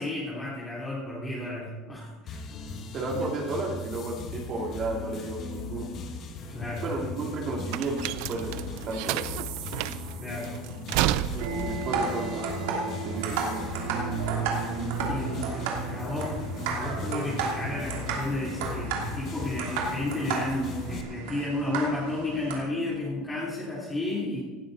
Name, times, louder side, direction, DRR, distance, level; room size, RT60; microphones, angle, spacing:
voice 1, 0.0-2.4 3.1-3.3 6.5-6.8 10.2-10.5 15.1-16.4 16.7-24.4, left 2 dB, 15° left, -7 dB, 3.3 m, -32 dB
sound 1, 2.3-21.0, left 4 dB, 45° left, 1.8 m, -38 dB
voice 2, 2.9-6.1 6.8-9.4 11.3-13.7, right 3 dB, 40° right, -2 dB, 2.7 m, -33 dB
sound 2, 6.4-13.2, right 15 dB, 70° right, 0.5 m, -32 dB
sound 3, 11.4-22.6, right 5 dB, 85° right, 2.9 m, -32 dB
18.0 x 12.0 x 4.1 m, 1.4 s
supercardioid pair, 135°, 0 cm